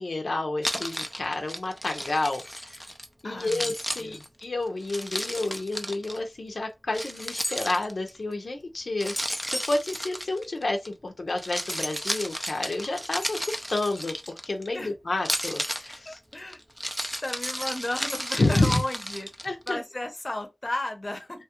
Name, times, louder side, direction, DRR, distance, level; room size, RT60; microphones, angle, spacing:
voice 1, 0.0-2.8 3.2-9.2 9.5-14.1 14.4-16.2 18.4-18.8 19.4-19.8, left 2 dB, 90° left, 0.6 m, -29 dB
Keys jangling, 0.6-3.1 3.4-6.2 6.9-8.2 9.0-10.9 11.3-14.7 15.2-19.7, equal, 5° right, 0.4 m, -33 dB
voice 2, 3.2-3.7 4.0-4.2 14.7-14.9 16.0-16.6 17.2-21.4, left 1 dB, 45° left, 0.7 m, -34 dB
3.0 x 2.3 x 2.9 m
wide cardioid pair, 70°, 0 cm